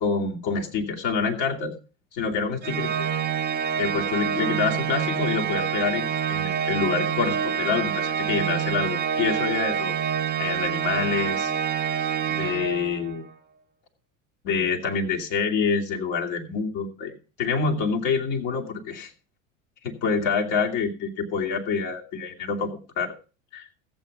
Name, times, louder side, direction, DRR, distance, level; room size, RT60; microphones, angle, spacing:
voice 1, 0.0-1.8 2.1-3.0 3.8-10.0 10.4-11.5 12.3-13.2 14.4-19.1 19.8-23.1 23.5-23.6, left 5 dB, 55° left, 1 dB, 2.5 m, -27 dB
Organ, 2.6-13.2, right 8 dB, 25° right, 1.2 m, -27 dB
14.5 x 8.1 x 5.0 m, 0.35 s
hypercardioid pair, 75°, 38 cm